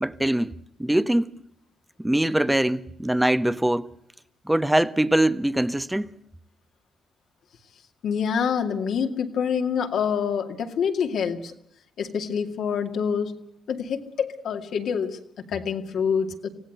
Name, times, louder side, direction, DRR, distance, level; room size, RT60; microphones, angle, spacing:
voice 1, 0.0-1.3 2.0-3.9 4.4-6.1, right 1 dB, 10° right, 1.1 m, -23 dB
voice 2, 8.0-11.5 12.0-13.4 13.7-16.5, left 7 dB, 70° left, 2.4 m, -26 dB
25.5 x 16.5 x 8.0 m
supercardioid pair, 65°, 0 cm